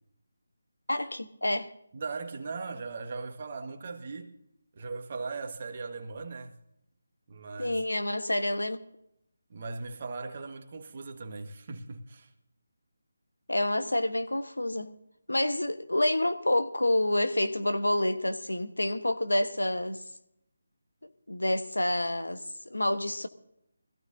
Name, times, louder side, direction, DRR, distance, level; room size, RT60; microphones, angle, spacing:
voice 1, 0.9-1.7 7.6-8.8 13.5-14.9 15.3-20.0 21.0-23.3, left 1 dB, 90° left, 1.2 m, -28 dB
voice 2, 1.9-4.3 4.8-6.6 7.3-7.8 9.5-12.3, right 4 dB, 40° right, 1.6 m, -39 dB
21.5 x 15.5 x 2.7 m
figure-of-eight pair, 155°, 0 cm